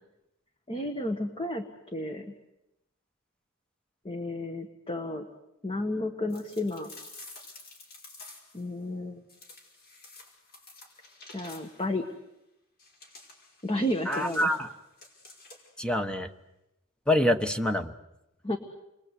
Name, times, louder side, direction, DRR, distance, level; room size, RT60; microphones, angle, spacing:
voice 1, 0.7-1.6 1.9-2.3 4.0-5.3 5.6-6.9 8.5-9.2 11.3-12.0 13.6-14.6 18.4-18.6, left 1 dB, 25° left, 6 dB, 1.6 m, -32 dB
sound 1, 6.3-8.7 9.3-11.9 12.8-15.8, left 3 dB, 45° left, 5.3 m, -50 dB
voice 2, 14.1-14.7 15.8-16.3 17.1-17.9, left 1 dB, 5° left, 8 dB, 1.1 m, -26 dB
28.5 x 22.5 x 8.3 m, 0.90 s
head